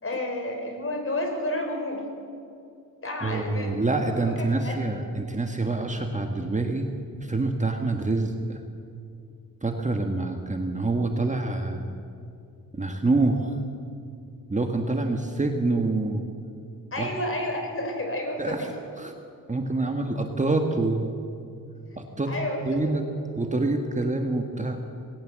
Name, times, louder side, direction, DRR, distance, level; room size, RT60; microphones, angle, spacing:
voice 1, 0.0-2.0 3.0-3.8 4.2-4.8 16.9-18.8 19.8-20.0 22.2-23.0, left 1 dB, 35° left, 3 dB, 4.8 m, -31 dB
voice 2, 3.2-6.9 7.2-8.6 9.6-11.9 12.7-13.5 14.5-16.2 17.0-17.1 18.4-18.6 19.0-19.1 19.5-21.1 22.0-22.3 22.7-23.1 23.4-24.8, right 2 dB, 20° right, 4 dB, 1.5 m, -26 dB
19.0 x 18.0 x 7.5 m, 2.5 s
cardioid pair, 100°, 35 cm